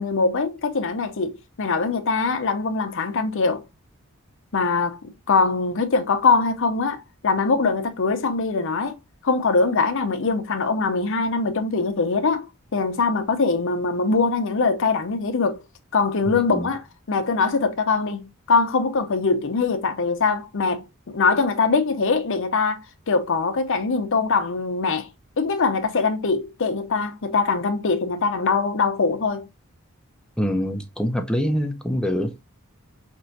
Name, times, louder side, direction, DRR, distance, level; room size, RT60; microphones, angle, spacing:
voice 1, 0.0-3.6 4.5-9.0 9.2-12.5 12.7-15.6 15.9-25.1 25.4-29.5, left 4 dB, 60° left, 0.7 m, -22 dB
voice 2, 30.4-32.3, equal, 5° left, 0.6 m, -24 dB
4.4 x 3.0 x 2.6 m
head